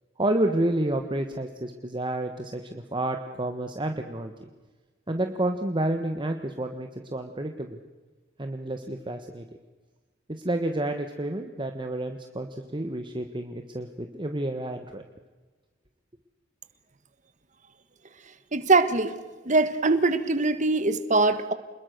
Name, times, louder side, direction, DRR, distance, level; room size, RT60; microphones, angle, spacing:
voice 1, 0.2-4.5 5.1-7.8 8.4-9.5 10.3-15.0, right 1 dB, 25° right, 5 dB, 1.4 m, -30 dB
voice 2, 18.5-19.1 19.4-21.5, right 3 dB, 40° right, 11 dB, 1.6 m, -22 dB
27.5 x 21.5 x 6.8 m, 1.3 s
head